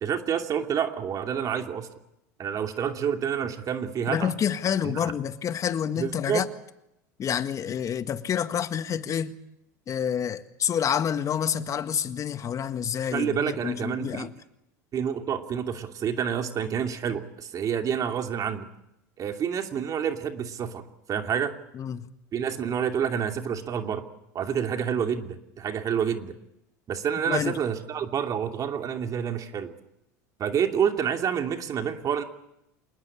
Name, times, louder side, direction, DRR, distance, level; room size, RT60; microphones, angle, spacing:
voice 1, 0.0-1.9 2.4-4.3 4.8-5.1 6.0-6.4 13.1-14.3 14.9-18.7 19.2-21.6 22.3-24.0 24.3-26.4 26.9-29.7 30.4-32.2, right 8 dB, 40° right, 2.8 m, -28 dB
voice 2, 4.1-6.5 7.2-9.4 9.9-14.3 21.7-22.1 27.3-27.6, left 8 dB, 35° left, 1.8 m, -28 dB
27.5 x 19.5 x 8.7 m
hypercardioid pair, 90°, 9 cm